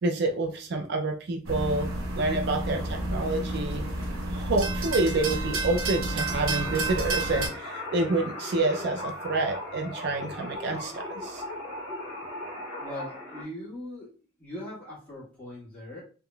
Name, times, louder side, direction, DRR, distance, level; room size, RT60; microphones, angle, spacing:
voice 1, 0.0-1.9 2.1-3.8 4.3-11.4, right 2 dB, 50° right, 3 dB, 0.4 m, -28 dB
sound 1, 1.5-7.5, right 2 dB, 85° right, 0.8 m, -30 dB
sound 2, 6.2-13.4, left 1 dB, 10° right, 1.8 m, -38 dB
voice 2, 12.8-14.1 14.4-16.0, left 1 dB, 5° left, -8 dB, 1.6 m, -40 dB
3.6 x 2.9 x 2.2 m, 0.37 s
head